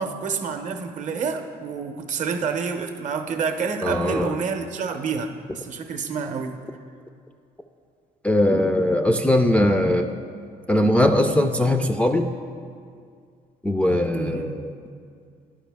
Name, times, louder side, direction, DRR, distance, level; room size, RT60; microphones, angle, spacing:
voice 1, 0.0-6.6 14.1-14.6, right 5 dB, 45° right, 6 dB, 0.6 m, -28 dB
voice 2, 3.8-4.3 8.2-10.1 10.7-12.3 13.6-14.7, left 1 dB, 5° left, 3 dB, 0.3 m, -20 dB
11.5 x 4.8 x 3.4 m, 2.2 s
cardioid pair, 110°, 17 cm